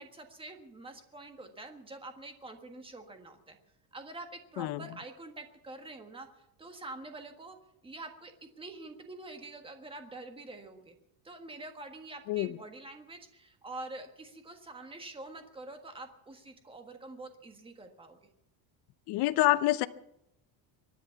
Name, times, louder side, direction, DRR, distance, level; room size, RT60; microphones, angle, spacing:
voice 1, 0.0-3.6 3.9-6.3 6.6-7.6 7.8-10.9 11.2-18.3, right 2 dB, 10° right, 5 dB, 1.5 m, -46 dB
voice 2, 19.1-19.9, left 17 dB, 50° left, 13 dB, 0.7 m, -26 dB
24.0 x 10.0 x 5.8 m, 0.83 s
cardioid pair, 170°, 50 cm